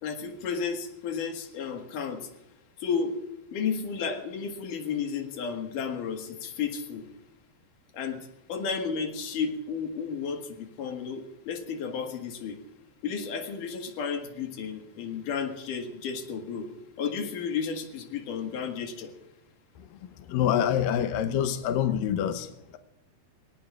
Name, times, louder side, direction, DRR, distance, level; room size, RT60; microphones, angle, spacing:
voice 1, 0.0-2.3 2.8-3.2 3.5-7.0 7.9-8.2 8.5-12.6 13.0-16.7 17.0-19.1, left 6 dB, 60° left, 3 dB, 2.8 m, -32 dB
voice 2, 19.8-22.8, left 10 dB, 85° left, 8 dB, 2.0 m, -27 dB
29.0 x 18.0 x 2.5 m, 0.92 s
omnidirectional pair, 5.0 m